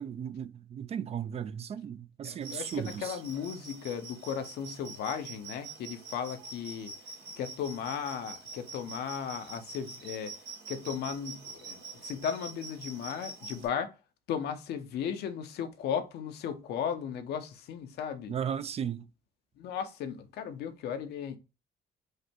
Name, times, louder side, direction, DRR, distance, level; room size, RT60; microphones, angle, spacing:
voice 1, 0.0-3.2 18.3-19.0, right 8 dB, 40° right, 0.4 m, -35 dB
voice 2, 2.2-6.9 7.4-10.3 10.7-13.9 14.3-18.4 19.6-21.4, left 8 dB, 75° left, 0.8 m, -36 dB
sound 1, 2.4-13.7, right 3 dB, 80° right, 2.2 m, -45 dB
4.9 x 2.2 x 4.3 m
cardioid pair, 110°, 17 cm